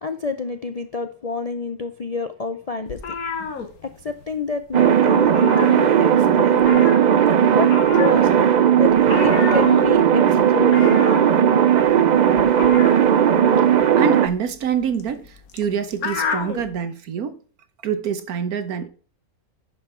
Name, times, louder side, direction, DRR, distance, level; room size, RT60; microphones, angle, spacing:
voice 1, 0.0-3.0 3.8-6.9 7.5-8.3 8.8-11.2, left 4 dB, 50° left, 0.4 m, -28 dB
sound 1, 2.9-4.4 4.6-4.9 5.2-6.3 6.6-16.7, left 5 dB, 85° left, 1.8 m, -31 dB
sound 2, 4.7-14.3, right 9 dB, 65° right, 0.4 m, -16 dB
voice 2, 14.0-17.4 17.8-18.9, right 7 dB, 90° right, 1.5 m, -25 dB
11.0 x 5.6 x 4.4 m
omnidirectional pair, 1.5 m